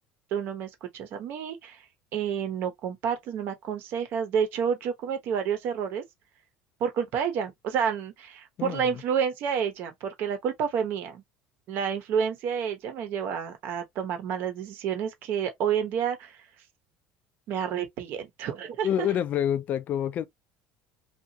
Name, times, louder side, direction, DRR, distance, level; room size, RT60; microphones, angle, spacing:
voice 1, 0.3-1.8 2.1-6.0 6.8-11.2 11.7-16.4 17.5-19.1, right 7 dB, 55° right, 0.8 m, -29 dB
voice 2, 8.6-9.0 18.8-20.2, left 10 dB, 40° left, 0.4 m, -27 dB
2.8 x 2.3 x 2.6 m
cardioid pair, 135°, 4 cm